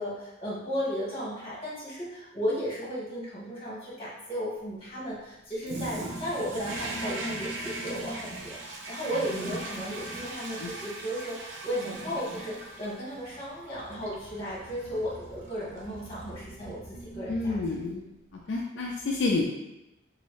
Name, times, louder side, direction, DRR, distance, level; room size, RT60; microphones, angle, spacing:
voice 1, 0.0-17.6, equal, 30° left, -7 dB, 1.3 m, -35 dB
Toilet flush, 5.6-18.0, right 2 dB, 80° right, 0.5 m, -40 dB
voice 2, 17.3-18.0 18.5-19.5, left 3 dB, 75° left, -1 dB, 0.4 m, -29 dB
3.0 x 2.7 x 3.0 m, 0.95 s
head